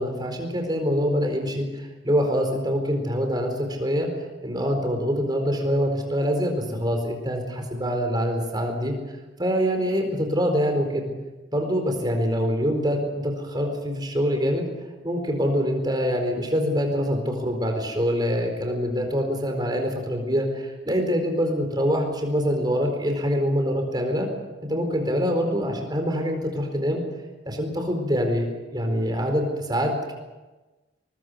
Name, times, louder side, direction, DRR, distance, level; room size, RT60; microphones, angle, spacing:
voice 1, 0.0-4.1 4.4-9.0 9.4-11.1 11.5-14.6 15.0-24.3 24.6-27.0 27.4-28.5 28.7-30.1, equal, 20° right, 3 dB, 4.4 m, -25 dB
23.0 x 22.0 x 7.0 m, 1.2 s
head